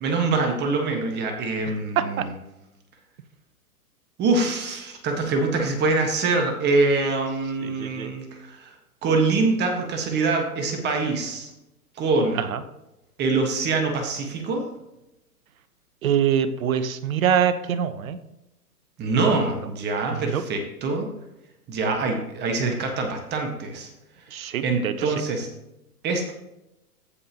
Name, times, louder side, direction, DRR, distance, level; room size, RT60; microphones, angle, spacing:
voice 1, 0.0-2.3 4.2-8.7 9.0-11.5 12.0-12.4 13.2-14.6 19.0-21.1 21.7-23.9 24.6-25.5 26.0-26.3, right 3 dB, 20° right, 4 dB, 1.5 m, -24 dB
voice 2, 7.6-8.1 12.5-12.6 16.0-18.2 19.3-19.4 20.1-20.4 24.3-25.1, right 8 dB, 60° right, 12 dB, 1.0 m, -24 dB
15.0 x 5.5 x 3.0 m, 0.91 s
hypercardioid pair, 130°, 46 cm